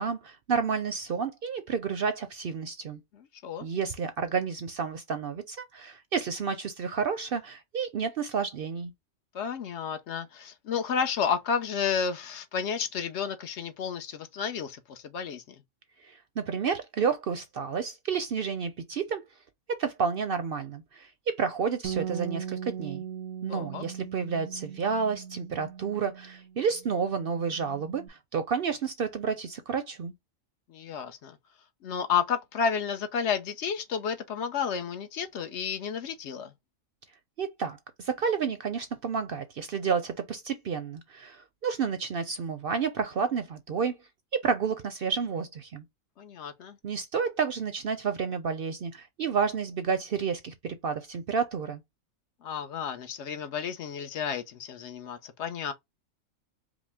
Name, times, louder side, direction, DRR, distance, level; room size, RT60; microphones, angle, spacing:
voice 1, 0.0-3.0 3.6-8.9 16.0-19.2 19.7-23.0 23.4-30.1 37.4-44.0 44.3-45.8 46.8-51.8, right 6 dB, 60° right, 0.6 m, -30 dB
voice 2, 3.1-3.7 9.3-15.4 23.5-23.8 30.7-31.4 31.8-36.5 46.2-46.8 52.4-55.7, left 7 dB, 65° left, 0.9 m, -31 dB
Bass guitar, 21.8-28.1, right 8 dB, 85° right, 1.0 m, -39 dB
5.1 x 2.0 x 3.4 m
omnidirectional pair, 1.4 m